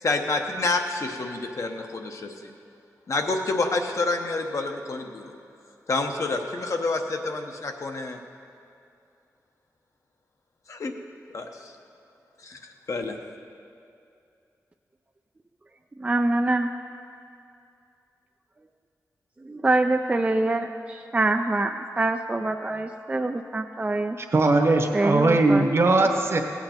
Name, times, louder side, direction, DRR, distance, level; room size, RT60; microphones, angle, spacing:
voice 1, 0.0-2.5 3.1-5.3 5.9-8.2 10.7-10.9 11.3-11.7 12.4-12.6 12.9-13.2, left 3 dB, 55° left, 4 dB, 0.9 m, -28 dB
voice 2, 16.0-16.7 19.4-24.2 24.9-25.7, right 2 dB, 20° right, 5 dB, 0.4 m, -25 dB
voice 3, 24.3-26.4, right 2 dB, 45° right, 5 dB, 1.1 m, -20 dB
16.5 x 8.6 x 4.4 m, 2.5 s
wide cardioid pair, 95°, 6 cm